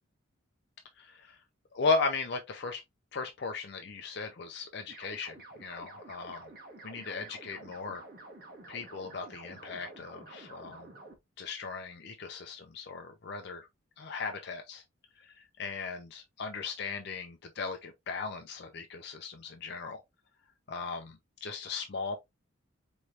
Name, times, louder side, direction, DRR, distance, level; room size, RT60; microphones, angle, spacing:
voice 1, 1.0-1.4 1.7-2.8 3.1-6.4 6.8-8.0 8.7-10.8 11.4-13.7 14.0-14.8 15.3-20.0 20.7-22.2, left 4 dB, 55° left, 0.5 m, -37 dB
sound 1, 4.9-11.2, right 2 dB, 45° right, 1.3 m, -50 dB
4.7 x 3.1 x 2.7 m
head